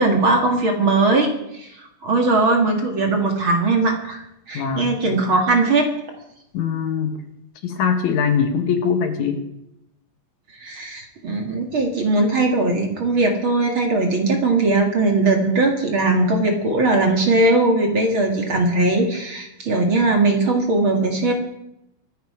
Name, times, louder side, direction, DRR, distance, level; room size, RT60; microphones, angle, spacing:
voice 1, 0.0-4.2 4.5-5.9 10.6-21.3, right 2 dB, 45° right, 2 dB, 2.4 m, -19 dB
voice 2, 4.5-5.0 6.5-7.2 7.6-9.5, left 6 dB, 65° left, 6 dB, 2.6 m, -22 dB
24.5 x 10.5 x 5.0 m, 0.83 s
omnidirectional pair, 3.8 m